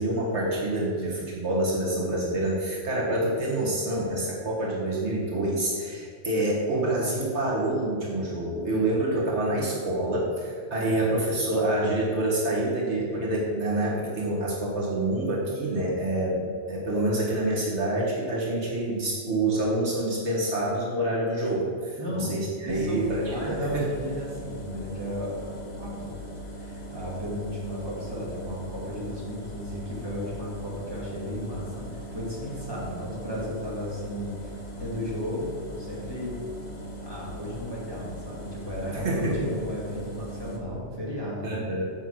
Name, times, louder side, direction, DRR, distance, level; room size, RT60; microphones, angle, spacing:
voice 1, 0.0-23.8 38.9-39.5 41.4-41.8, right 1 dB, 75° right, -4 dB, 1.9 m, -27 dB
voice 2, 22.0-22.3 22.6-26.1 26.6-35.5 35.8-36.4 36.7-41.6, equal, 20° right, -6 dB, 2.5 m, -35 dB
sound 1, 22.7-40.6, equal, 40° left, 1.3 m, -40 dB
7.7 x 5.6 x 6.2 m, 2.1 s
omnidirectional pair, 1.1 m